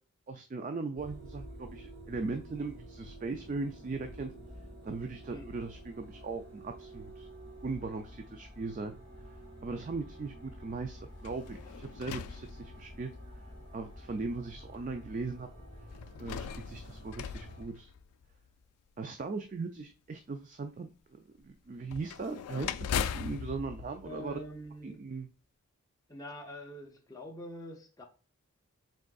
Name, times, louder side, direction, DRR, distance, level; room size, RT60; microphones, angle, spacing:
voice 1, 0.3-4.3 4.8-7.3 7.6-9.0 9.6-13.1 13.7-15.5 16.2-17.9 19.0-24.4 24.8-25.3, right 3 dB, 35° right, 0.3 m, -39 dB
sound 1, 1.0-17.6, equal, 55° right, 2.3 m, -49 dB
sound 2, 11.2-13.2 14.0-14.1 15.9-18.5 21.9-24.9, left 7 dB, 90° left, 0.3 m, -39 dB
voice 2, 24.0-25.0 26.1-28.1, equal, 15° left, 0.6 m, -45 dB
5.0 x 3.7 x 2.3 m
head